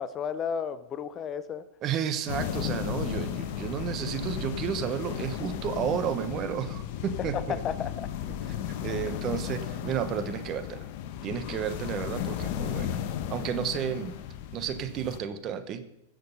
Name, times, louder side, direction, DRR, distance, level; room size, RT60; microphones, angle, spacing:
voice 1, 0.0-1.6 7.3-8.1, left 7 dB, 30° left, 14 dB, 0.6 m, -33 dB
voice 2, 1.8-7.6 8.8-10.8 11.2-13.0 13.3-14.1 14.5-15.9, right 8 dB, 35° right, 10 dB, 1.1 m, -32 dB
sound 1, 2.3-15.2, left 10 dB, 55° left, 1.1 m, -35 dB
15.5 x 6.6 x 5.5 m, 0.86 s
hypercardioid pair, 115°, 0 cm